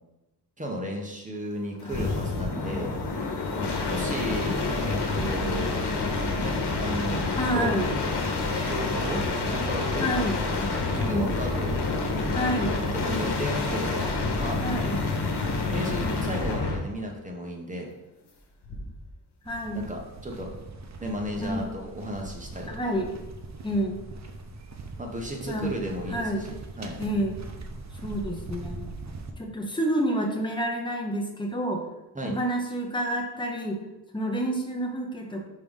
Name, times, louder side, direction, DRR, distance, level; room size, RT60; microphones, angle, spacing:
voice 1, 0.6-2.9 3.9-5.8 6.4-7.3 7.5-7.8 8.6-9.2 9.5-10.2 10.5-11.8 12.6-14.1 14.4-14.6 15.7-17.9 19.7-20.5 21.0-22.7 25.0-27.0 32.1-32.4, equal, 20° right, 0 dB, 1.1 m, -34 dB
sound 1, 1.8-16.9 18.6-19.1, left 3 dB, 90° left, 1.1 m, -28 dB
sound 2, 4.1-13.6, left 3 dB, 70° left, 1.2 m, -40 dB
voice 2, 7.4-7.9 10.0-10.4 11.0-11.3 12.3-12.7 14.6-15.0 19.5-19.8 21.4-21.6 22.7-23.1 23.6-23.9 25.5-25.7 26.1-26.5 27.0-27.4 28.0-28.8 29.4-31.8 32.2-33.8 34.1-35.4, right 1 dB, 10° left, 0 dB, 1.0 m, -28 dB
sound 3, 19.5-29.3, right 3 dB, 45° right, 0.7 m, -41 dB
5.5 x 3.4 x 5.4 m, 0.98 s
wide cardioid pair, 120°, 39 cm